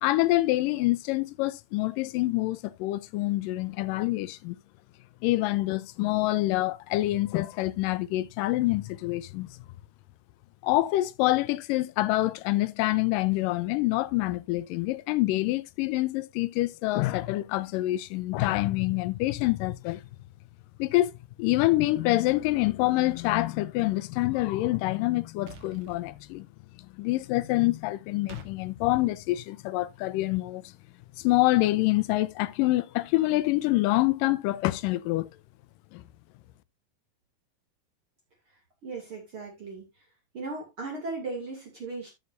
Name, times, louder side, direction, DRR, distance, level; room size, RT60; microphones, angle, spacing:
voice 1, 0.0-4.6 5.2-9.5 10.6-20.0 20.8-21.1 21.4-26.5 27.0-30.7 31.2-35.3 35.9-36.0, left 18 dB, 80° left, 2.3 m, -26 dB
sound 1, 25.5-26.0 28.3-28.5, right 7 dB, 65° right, 2.7 m, -47 dB
voice 2, 38.8-39.9 40.3-42.1, right 3 dB, 40° right, 2.9 m, -37 dB
13.0 x 7.1 x 2.6 m
omnidirectional pair, 3.9 m